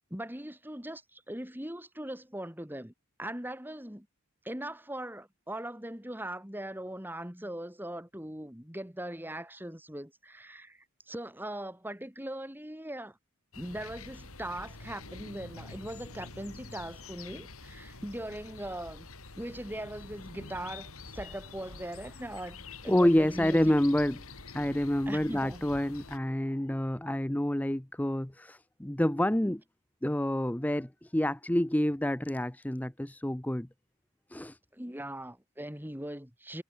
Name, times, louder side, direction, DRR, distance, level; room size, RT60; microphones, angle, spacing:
voice 1, 0.1-2.9 3.2-4.1 4.4-13.2 13.6-19.1 19.4-23.7 25.1-25.6 34.7-36.6, right 1 dB, 10° right, 2.7 m, -40 dB
sound 1, 13.5-26.2, left 3 dB, 85° left, 5.2 m, -47 dB
voice 2, 22.9-24.2 24.5-29.6 30.0-33.7 34.3-34.6, left 1 dB, 5° left, 0.6 m, -28 dB
head